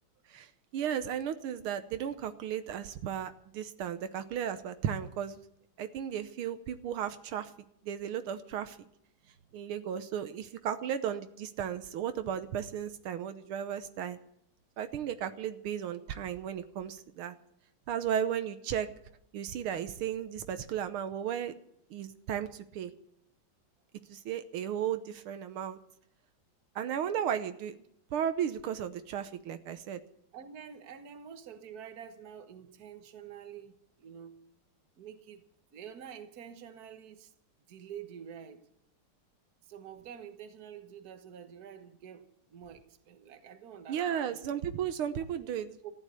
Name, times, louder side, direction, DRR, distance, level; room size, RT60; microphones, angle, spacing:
voice 1, 0.3-5.4 5.8-7.5 7.8-8.8 9.5-14.2 14.8-17.4 17.9-18.9 19.3-21.5 21.9-22.9 24.1-25.8 26.8-27.8 28.1-30.0 43.9-45.8, right 9 dB, 80° right, 1.8 m, -35 dB
voice 2, 9.2-9.5 30.3-34.4 35.0-35.4 35.7-37.3 37.7-38.7 39.6-44.4 45.4-45.5 45.8-45.9, right 8 dB, 50° right, 1.6 m, -48 dB
15.0 x 10.5 x 8.5 m
omnidirectional pair, 2.3 m